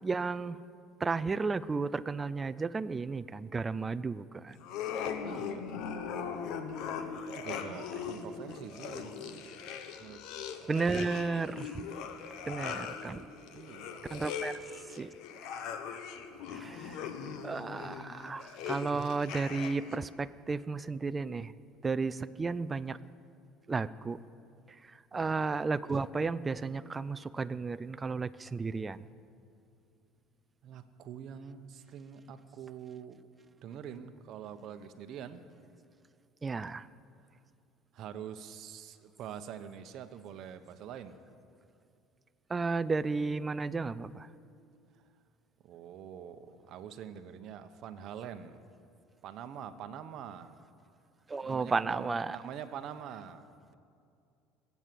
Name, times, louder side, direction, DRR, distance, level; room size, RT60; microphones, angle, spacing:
voice 1, 0.0-0.6 1.0-4.6 10.7-11.8 12.4-13.2 14.1-14.5 14.9-15.1 16.5-17.0 17.4-21.5 21.8-23.0 23.7-24.2 25.1-29.0 36.4-36.9 42.5-44.3 51.3-52.4, right 4 dB, 20° right, 15 dB, 0.4 m, -33 dB
sound 1, 4.6-20.0, left 6 dB, 65° left, 1.2 m, -40 dB
voice 2, 5.2-5.8 7.3-9.4 10.0-10.2 13.5-14.1 25.1-25.3 30.6-33.2 33.6-35.4 37.9-41.1 45.6-48.6 49.2-50.5 51.4-53.5, right 8 dB, 55° right, 9 dB, 0.9 m, -45 dB
20.5 x 8.3 x 7.7 m, 2.5 s
cardioid pair, 125°, 0 cm